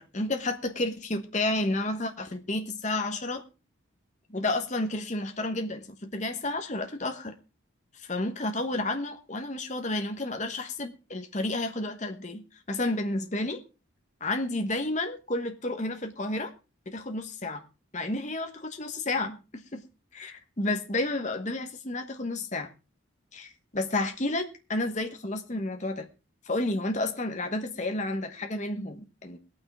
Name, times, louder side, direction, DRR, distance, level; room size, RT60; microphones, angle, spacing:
voice 1, 0.0-3.4 4.3-7.4 8.0-13.6 14.2-16.5 16.9-17.6 17.9-19.8 20.1-22.7 23.3-26.1 26.5-29.4, left 2 dB, 35° left, 5 dB, 1.2 m, -31 dB
20.5 x 8.9 x 3.6 m, 0.32 s
head